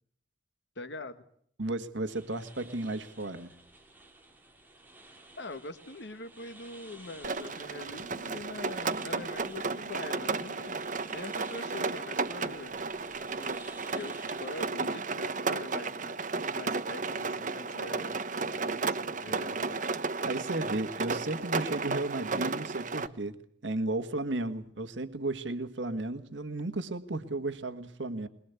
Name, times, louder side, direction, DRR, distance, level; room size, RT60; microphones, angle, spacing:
voice 1, 0.7-1.2 5.4-10.8 11.1-12.8 13.3-13.6 13.9-19.9, left 2 dB, 70° left, 9 dB, 1.5 m, -44 dB
voice 2, 1.6-3.5 19.3-19.6 20.3-23.4 23.6-28.3, right 2 dB, 85° right, 9 dB, 1.7 m, -34 dB
sound 1, 2.1-14.7, right 2 dB, 10° right, 3.9 m, -54 dB
Rain, 7.2-23.1, right 4 dB, 45° right, 1.1 m, -33 dB
22.0 x 22.0 x 8.3 m, 0.65 s
head